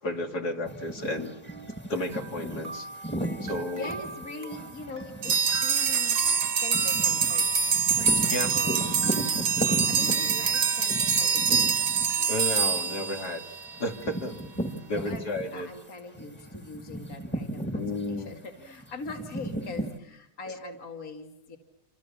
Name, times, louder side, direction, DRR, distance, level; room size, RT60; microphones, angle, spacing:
voice 1, 0.0-1.3 1.9-2.9 3.4-3.9 8.3-8.5 11.2-11.3 12.3-13.4 13.8-14.4 14.9-15.7 17.7-18.3, left 1 dB, 75° left, 3 dB, 3.4 m, -32 dB
sound 1, 0.6-15.8 16.1-20.0, right 1 dB, 5° left, 1.9 m, -36 dB
sound 2, 2.1-11.3 11.6-13.0 13.4-13.5 14.0-14.1, right 3 dB, 55° right, 2.2 m, -43 dB
voice 2, 3.7-7.5 8.0-9.4 9.9-11.8 14.9-15.3 15.5-21.6, left 3 dB, 60° left, 3 dB, 2.6 m, -42 dB
sound 3, 5.2-13.8, right 6 dB, 80° right, 1.9 m, -25 dB
28.5 x 27.0 x 7.2 m, 0.80 s
omnidirectional pair, 1.7 m